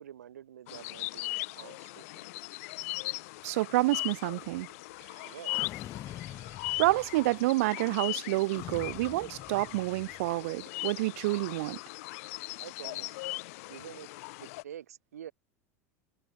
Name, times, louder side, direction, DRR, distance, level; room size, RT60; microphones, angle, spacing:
voice 1, 0.0-2.3 5.2-5.5 12.5-13.2 13.7-14.1 14.4-15.3, right 10 dB, 85° right, 7.8 m, -47 dB
sound 1, 0.7-14.6, left 23 dB, 65° left, 2.9 m, -39 dB
voice 2, 3.4-4.7 6.8-11.8, right 20 dB, 70° right, 0.8 m, -28 dB
sound 2, 5.5-7.4 8.5-10.3, left 12 dB, 45° left, 7.8 m, -45 dB
hypercardioid pair, 90°, 8 cm